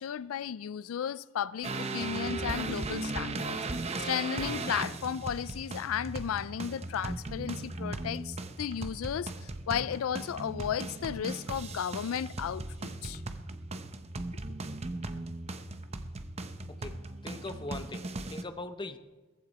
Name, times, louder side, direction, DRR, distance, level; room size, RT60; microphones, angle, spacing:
voice 1, 0.0-3.6 4.0-13.2, left 8 dB, 85° left, 0.4 m, -34 dB
sound 1, 1.6-18.4, right 2 dB, 30° right, 0.7 m, -37 dB
voice 2, 16.7-19.0, left 2 dB, 25° left, 0.8 m, -41 dB
17.5 x 15.0 x 4.1 m
head